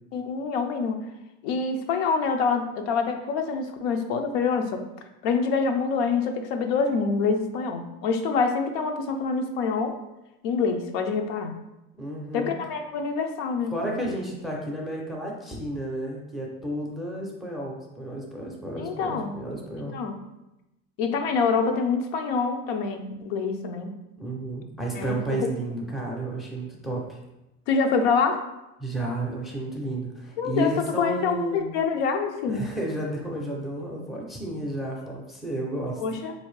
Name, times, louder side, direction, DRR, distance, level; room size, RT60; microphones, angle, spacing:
voice 1, 0.1-1.0 1.4-4.8 5.2-9.9 10.4-11.6 12.3-13.7 18.8-19.3 19.8-20.2 21.0-23.9 25.0-25.4 27.7-28.4 30.4-32.6 36.0-36.3, left 5 dB, 85° left, 5 dB, 0.6 m, -26 dB
voice 2, 12.0-12.5 13.7-20.0 24.2-27.2 28.8-31.7 32.5-36.0, right 1 dB, ahead, -2 dB, 0.4 m, -32 dB
4.2 x 2.7 x 3.1 m, 0.94 s
cardioid pair, 150°, 30 cm